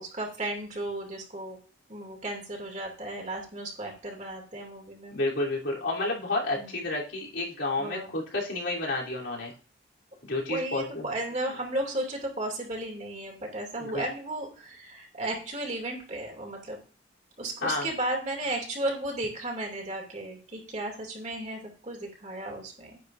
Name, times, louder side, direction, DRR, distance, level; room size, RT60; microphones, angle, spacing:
voice 1, 0.0-1.6 1.9-5.2 6.6-6.8 7.8-8.1 10.5-16.8 17.4-23.0, right 1 dB, 40° right, 1 dB, 2.6 m, -34 dB
voice 2, 5.1-9.5 10.2-11.1 13.8-14.0 17.6-17.9, left 2 dB, 80° left, -4 dB, 3.3 m, -30 dB
10.0 x 9.3 x 2.6 m, 0.38 s
head